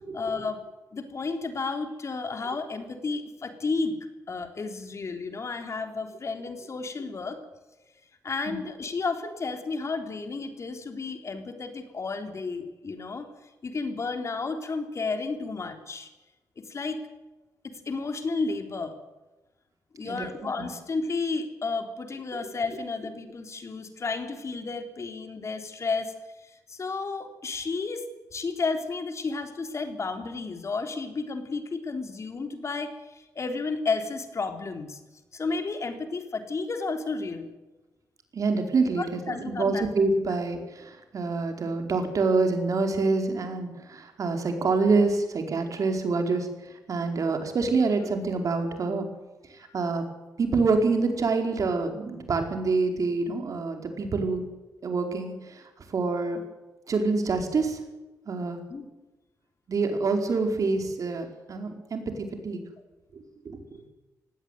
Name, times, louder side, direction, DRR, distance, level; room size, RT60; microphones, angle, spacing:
voice 1, 0.1-0.6 0.9-4.0 4.3-7.4 8.2-13.3 13.6-16.1 16.7-17.0 17.6-19.0 19.9-26.1 26.4-28.1 28.3-35.0 35.3-37.5 39.0-39.8 58.7-58.9, left 4 dB, 50° left, 6 dB, 3.6 m, -32 dB
voice 2, 38.3-49.1 49.5-50.0 50.4-54.4 54.8-56.4 56.9-57.8 58.3-58.6 59.7-62.6 63.1-63.8, right 3 dB, 60° right, 5 dB, 4.8 m, -26 dB
19.0 x 16.5 x 9.4 m, 1.1 s
cardioid pair, 60°, 6 cm